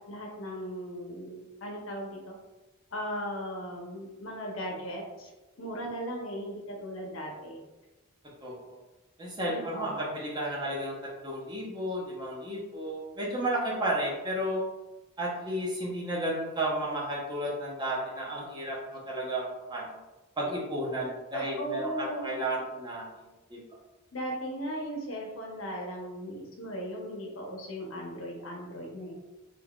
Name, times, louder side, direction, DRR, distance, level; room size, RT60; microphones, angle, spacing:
voice 1, 0.1-2.3 2.9-5.3 5.6-7.6 9.5-10.2 21.3-22.4 24.1-29.1, equal, 85° left, 0 dB, 0.9 m, -37 dB
voice 2, 8.4-8.8 9.2-10.9 11.2-14.6 15.2-20.0 20.4-23.1 23.5-23.6, right 1 dB, 20° right, -3 dB, 0.8 m, -33 dB
3.8 x 3.4 x 2.4 m, 1.1 s
head